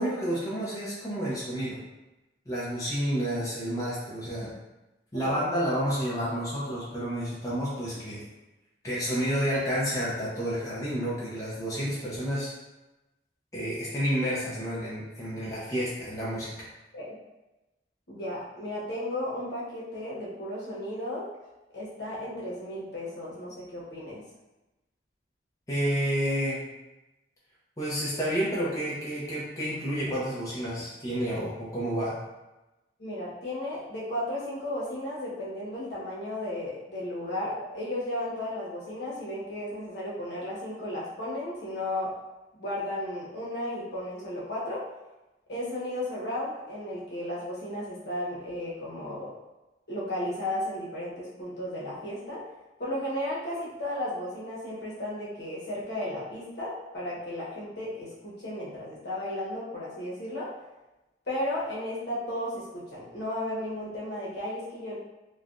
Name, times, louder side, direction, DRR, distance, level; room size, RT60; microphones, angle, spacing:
voice 1, 0.0-1.8 2.5-4.5 5.1-8.2 8.8-12.5 13.5-16.5 25.7-26.7 27.8-32.2, equal, 20° left, -8 dB, 0.6 m, -30 dB
voice 2, 18.1-21.3 21.7-24.2 33.0-42.1 42.6-44.8 45.5-49.3 49.9-52.4 52.8-60.5 61.3-65.0, left 1 dB, 70° left, -7 dB, 1.0 m, -34 dB
3.2 x 2.2 x 2.5 m, 1.0 s
head